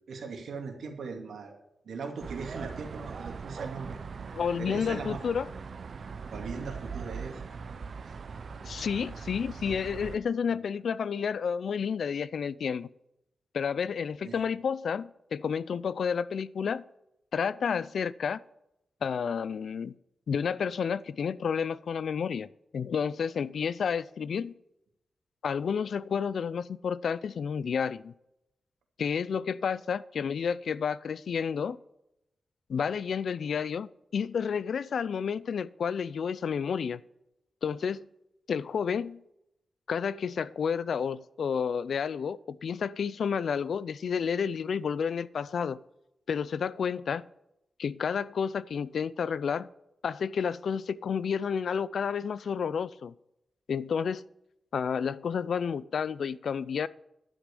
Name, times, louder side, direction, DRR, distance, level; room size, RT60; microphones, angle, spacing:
voice 1, 0.0-1.5 1.8-4.0 4.6-5.2 6.3-7.4 8.0-8.2 10.5-10.6 14.2-14.4, right 4 dB, 80° right, 2.5 m, -39 dB
sound 1, 2.2-10.2, right 5 dB, 60° right, 0.7 m, -41 dB
voice 2, 4.3-5.5 8.6-12.9 13.5-16.8 17.3-18.4 19.0-19.9 20.3-24.5 25.4-28.1 29.0-31.8 32.7-37.0 37.6-38.1 38.5-39.2 39.9-45.8 46.3-47.2 47.8-49.7 50.0-53.1 53.7-54.2 54.7-56.9, left 6 dB, 70° left, 0.4 m, -30 dB
11.5 x 6.2 x 6.9 m
wide cardioid pair, 105°, 0 cm